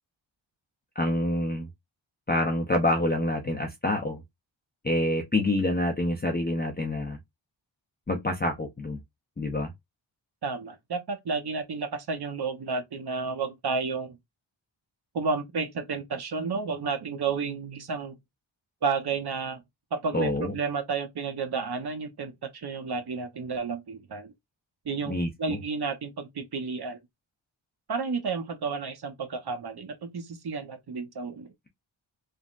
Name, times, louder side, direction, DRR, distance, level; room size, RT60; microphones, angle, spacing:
voice 1, 1.0-1.7 2.3-4.2 4.8-7.2 8.1-9.0 9.4-9.7 20.1-20.5 25.1-25.6, left 1 dB, 20° left, 0.6 m, -27 dB
voice 2, 10.4-14.2 15.1-18.2 18.8-19.6 19.9-24.3 24.8-27.0 27.9-31.5, right 4 dB, 55° right, 0.8 m, -31 dB
3.5 x 2.1 x 2.4 m
cardioid pair, 55°, 48 cm